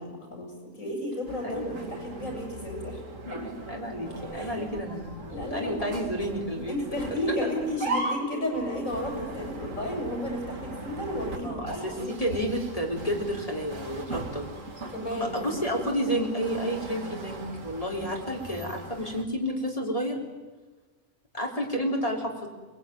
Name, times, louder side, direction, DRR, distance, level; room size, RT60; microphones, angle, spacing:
voice 1, 0.0-3.0 3.3-3.4 4.3-4.7 5.3-5.9 6.7-12.4 14.9-15.4, left 1 dB, 85° left, 1 dB, 7.9 m, -33 dB
sound 1, 1.3-19.2, right 2 dB, 75° right, 2.8 m, -39 dB
voice 2, 1.4-1.8 3.2-3.4 3.7-7.0 11.4-11.9 12.2-14.5 15.2-20.2 21.3-22.5, equal, 25° left, 0 dB, 4.1 m, -31 dB
24.5 x 20.5 x 9.4 m, 1.3 s
omnidirectional pair, 1.4 m